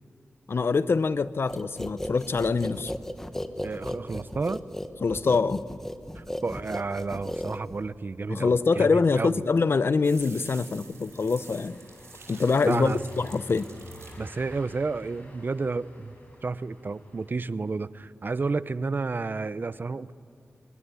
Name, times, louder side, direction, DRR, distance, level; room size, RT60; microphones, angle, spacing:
voice 1, 0.5-2.9 5.0-5.6 8.3-11.8 12.3-13.7, left 4 dB, 60° left, 15 dB, 0.7 m, -24 dB
sound 1, 1.5-8.0, left 1 dB, 10° left, 1.3 m, -35 dB
voice 2, 3.6-4.6 6.2-9.4 12.6-13.0 14.2-16.1 16.4-20.2, right 4 dB, 45° right, 15 dB, 0.7 m, -31 dB
sound 2, 10.0-15.2, right 4 dB, 90° right, 4.0 m, -49 dB
Car passing by / Engine, 10.6-17.3, left 1 dB, 35° left, 6.7 m, -49 dB
25.5 x 21.0 x 9.8 m, 2.4 s
wide cardioid pair, 95°, 5 cm